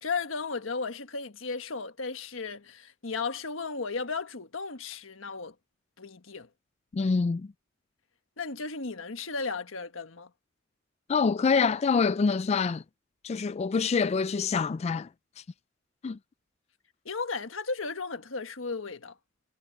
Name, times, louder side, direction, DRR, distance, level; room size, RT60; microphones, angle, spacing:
voice 1, 0.0-5.5 6.0-6.5 8.4-10.3 17.0-19.1, left 4 dB, 85° left, 1.5 m, -35 dB
voice 2, 6.9-7.5 11.1-12.8 13.2-15.1 16.0-16.2, left 5 dB, 35° left, 0.3 m, -26 dB
head